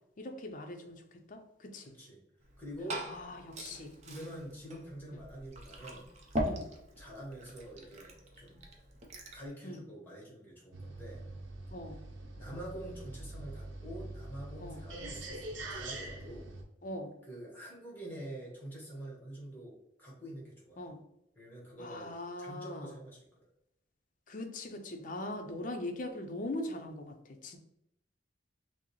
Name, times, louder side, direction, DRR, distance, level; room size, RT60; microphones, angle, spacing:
voice 1, 0.2-1.0 1.3-1.9 3.0-4.0 6.4-6.7 9.6-9.8 11.7-12.0 14.6-14.8 16.8-17.1 20.8-21.0 21.8-22.9 24.3-27.6, left 1 dB, 45° left, 4 dB, 0.5 m, -41 dB
voice 2, 1.8-2.2 2.6-3.0 3.7-3.8 4.0-6.7 7.0-8.6 9.3-11.2 12.4-16.5 17.3-19.7 20.0-20.9 21.3-23.5, right 1 dB, 10° left, -4 dB, 1.3 m, -46 dB
Glass / Fill (with liquid), 2.4-9.5, equal, 35° right, 0.6 m, -41 dB
sound 1, 10.7-16.6, right 2 dB, 80° right, 0.7 m, -44 dB
6.0 x 2.0 x 3.0 m, 0.80 s
head